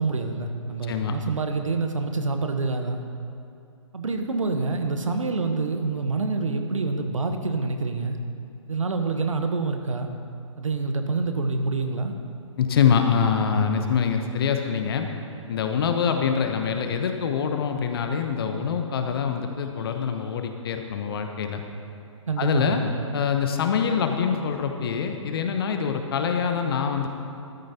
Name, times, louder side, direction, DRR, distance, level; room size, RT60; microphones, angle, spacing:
voice 1, 0.0-3.0 3.9-8.2 8.7-10.1 10.6-12.1 22.3-22.9, right 3 dB, 75° right, 6 dB, 1.2 m, -27 dB
voice 2, 0.9-1.2 12.6-15.1 15.5-21.6 22.4-22.8 23.1-27.1, left 7 dB, 45° left, 5 dB, 1.0 m, -24 dB
13.5 x 12.0 x 2.9 m, 2.5 s
figure-of-eight pair, 135°, 17 cm